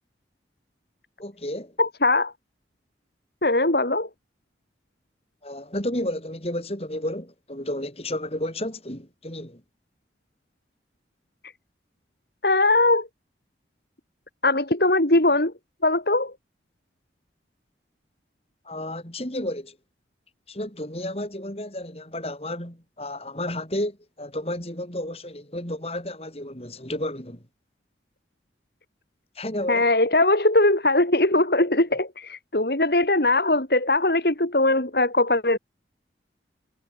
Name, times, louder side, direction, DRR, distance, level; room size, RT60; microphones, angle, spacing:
voice 1, 1.2-1.7 5.4-9.6 18.6-19.8 20.5-27.4 29.3-29.9, left 1 dB, 35° left, 6.4 m, -32 dB
voice 2, 1.8-2.3 3.4-4.1 12.4-13.1 14.4-15.5 15.8-16.3 29.7-35.6, left 2 dB, 60° left, 2.8 m, -20 dB
head